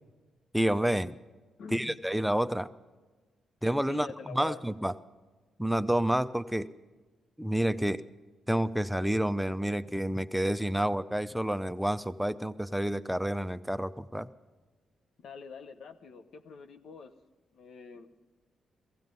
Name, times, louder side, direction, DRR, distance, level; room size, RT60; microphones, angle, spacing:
voice 1, 0.5-1.2 1.7-2.7 3.6-4.1 4.3-4.9 5.6-6.7 7.4-8.0 8.5-14.3, right 1 dB, ahead, 12 dB, 0.6 m, -29 dB
voice 2, 1.6-2.0 3.9-4.6 15.2-17.1 17.5-18.1, left 5 dB, 70° left, 8 dB, 0.9 m, -45 dB
17.0 x 15.5 x 5.3 m, 1.3 s
supercardioid pair, 50°, 0 cm